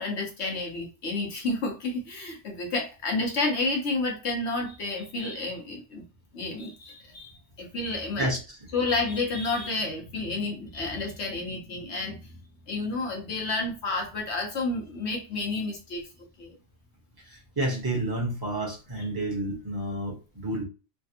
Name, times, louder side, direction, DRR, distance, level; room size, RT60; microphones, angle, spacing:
voice 1, 0.0-6.0 6.3-7.3 7.6-8.3 8.7-12.3 12.7-16.1 16.4-16.6, left 3 dB, 70° left, 1 dB, 1.2 m, -30 dB
voice 2, 8.2-8.7 17.2-20.6, right 1 dB, 20° right, -3 dB, 1.1 m, -30 dB
3.3 x 2.2 x 2.8 m, 0.33 s
omnidirectional pair, 1.2 m